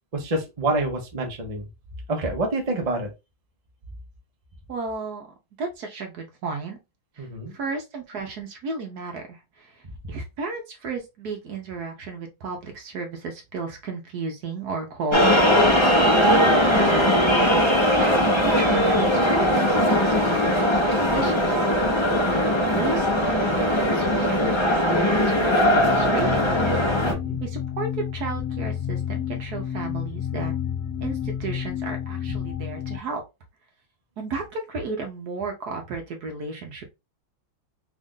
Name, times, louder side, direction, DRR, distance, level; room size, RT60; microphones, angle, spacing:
voice 1, 0.1-1.7 2.1-3.1 7.2-7.5 27.0-27.4, right 2 dB, 35° right, 2 dB, 0.5 m, -27 dB
voice 2, 4.7-6.8 7.1-7.3 7.5-16.1 16.7-17.3 18.0-20.7 20.9-21.9 22.2-26.4 27.4-30.5 31.0-33.2 34.2-36.9, right 4 dB, 60° right, 3 dB, 1.1 m, -33 dB
sound 1, 15.1-27.1, equal, 25° left, 0.6 m, -20 dB
sound 2, 25.8-33.0, left 9 dB, 70° left, 0.9 m, -30 dB
3.5 x 2.5 x 3.6 m, 0.24 s
omnidirectional pair, 2.2 m